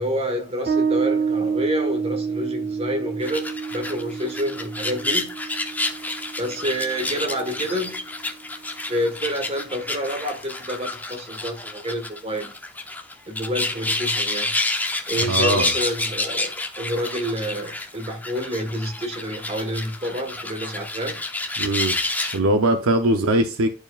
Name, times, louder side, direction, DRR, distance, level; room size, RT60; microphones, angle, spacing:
voice 1, 0.0-5.3 6.4-8.0 8.9-12.5 13.3-14.5 15.1-21.2 23.1-23.3, equal, 30° right, 1.5 m, -28 dB
Bass guitar, 0.7-7.8, right 5 dB, 45° right, 2.2 m, -28 dB
sound 1, 3.2-22.4, left 2 dB, 10° left, 0.6 m, -29 dB
voice 2, 15.2-15.7 21.6-22.0 22.3-23.7, right 1 dB, 90° right, 0.7 m, -21 dB
10.5 x 4.8 x 2.4 m
head